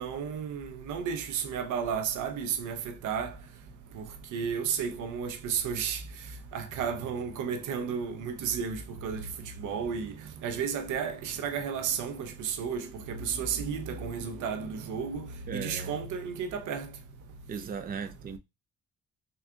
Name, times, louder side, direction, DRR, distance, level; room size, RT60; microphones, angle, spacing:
voice 1, 0.0-3.3 3.9-4.0 4.3-6.0 6.5-9.3 9.6-10.1 10.4-16.9, right 7 dB, 80° right, 0.7 m, -33 dB
voice 2, 15.5-16.0 17.5-18.4, right 6 dB, 30° right, 0.5 m, -37 dB
3.8 x 2.4 x 3.5 m
cardioid pair, 90°, 30 cm